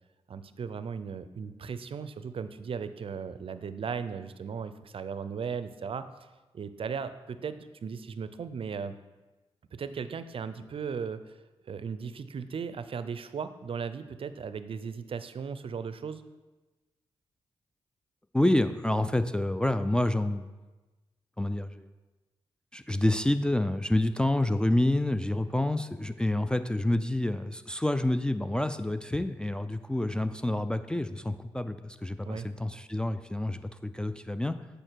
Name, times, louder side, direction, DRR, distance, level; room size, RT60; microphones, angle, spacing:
voice 1, 0.3-6.1 6.5-9.0 9.7-11.2 11.6-16.2 32.2-32.5, right 6 dB, 55° right, 12 dB, 0.5 m, -37 dB
voice 2, 18.3-20.5 21.4-21.9 22.7-34.6, left 1 dB, 10° left, 9 dB, 0.4 m, -28 dB
8.7 x 5.0 x 4.6 m, 1.2 s
cardioid pair, 60°, 11 cm